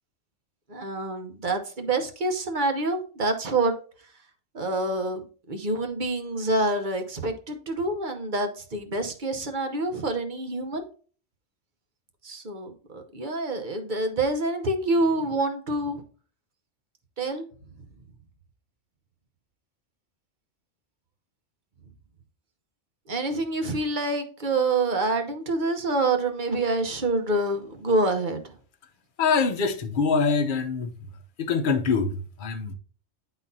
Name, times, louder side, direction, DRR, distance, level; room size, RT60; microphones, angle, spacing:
voice 1, 0.7-3.7 4.5-10.8 12.2-16.0 17.2-17.5 23.1-28.6, right 2 dB, 45° right, 1.0 m, -27 dB
voice 2, 29.2-31.1 31.4-32.7, left 5 dB, 45° left, 1.0 m, -24 dB
10.5 x 4.0 x 2.7 m
omnidirectional pair, 1.2 m